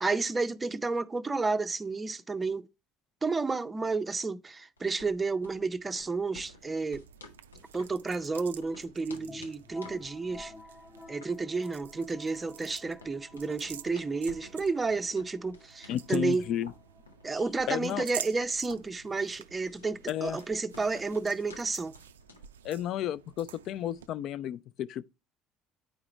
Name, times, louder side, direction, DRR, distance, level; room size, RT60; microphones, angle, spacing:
voice 1, 0.0-2.6 3.2-7.0 7.7-10.5 11.1-16.4 17.2-21.9, right 4 dB, 20° right, 0.5 m, -31 dB
sound 1, 4.8-22.6, left 2 dB, 85° left, 0.7 m, -54 dB
sound 2, 6.4-24.1, right 9 dB, 80° right, 0.3 m, -49 dB
sound 3, 9.1-18.7, left 2 dB, 15° left, 0.9 m, -52 dB
voice 2, 15.9-16.7 17.7-18.0 20.1-20.4 22.6-25.1, left 11 dB, 55° left, 0.4 m, -32 dB
9.1 x 4.8 x 3.0 m
figure-of-eight pair, 60°, 0 cm